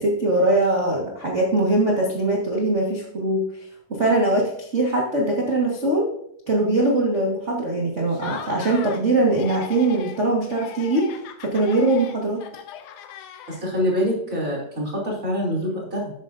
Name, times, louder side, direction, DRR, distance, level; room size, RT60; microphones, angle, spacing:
voice 1, 0.0-6.1 6.5-12.4, right 2 dB, 80° right, -3 dB, 0.6 m, -22 dB
Laughter, 8.1-9.0 9.3-10.2 10.5-13.8, left 10 dB, 75° left, 2.0 m, -39 dB
voice 2, 13.5-16.1, equal, 25° right, -3 dB, 3.2 m, -25 dB
12.5 x 9.0 x 2.7 m, 0.73 s
omnidirectional pair, 4.1 m